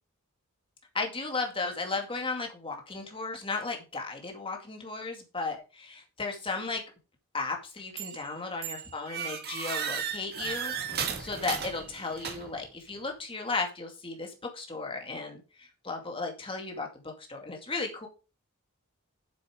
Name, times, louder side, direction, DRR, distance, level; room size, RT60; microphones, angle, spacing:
voice 1, 0.9-6.8 7.3-16.9 17.3-18.1, left 3 dB, 25° left, 2 dB, 2.3 m, -35 dB
sound 1, 8.0-8.3 8.6-12.7, right 7 dB, 50° right, 1.8 m, -35 dB
8.1 x 7.0 x 4.9 m, 0.32 s
head